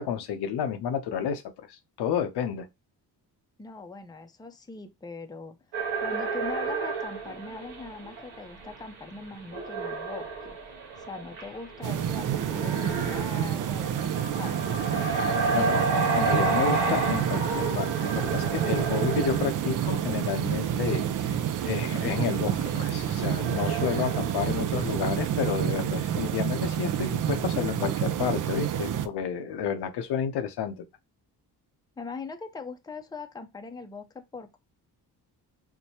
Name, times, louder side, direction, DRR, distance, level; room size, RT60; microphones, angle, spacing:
voice 1, 0.0-2.7 15.0-21.0 21.3-21.4 21.6-30.8, left 8 dB, 75° left, 0.7 m, -31 dB
voice 2, 3.6-5.6 6.0-10.6 11.0-14.8 32.0-34.6, left 4 dB, 10° left, 0.5 m, -41 dB
sound 1, 5.7-8.9 9.2-20.5 20.9-21.0 21.6-25.5, right 3 dB, 85° right, 0.9 m, -31 dB
sound 2, 11.8-29.1, right 9 dB, 50° right, 0.5 m, -29 dB
4.6 x 2.2 x 2.8 m
cardioid pair, 70°, 40 cm